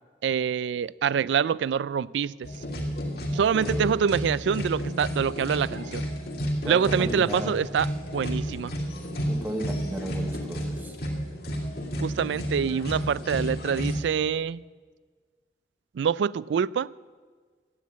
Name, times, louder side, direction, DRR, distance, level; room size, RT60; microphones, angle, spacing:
voice 1, 0.2-2.3 3.3-6.0 6.6-8.7 12.0-14.6 15.9-16.9, right 7 dB, 80° right, 21 dB, 0.3 m, -25 dB
sound 1, 2.4-14.0, equal, 55° left, 2.9 m, -31 dB
voice 2, 3.3-3.9 6.6-7.6 9.3-10.9, right 1 dB, 10° right, 4 dB, 1.3 m, -35 dB
13.0 x 9.5 x 8.5 m, 1.5 s
head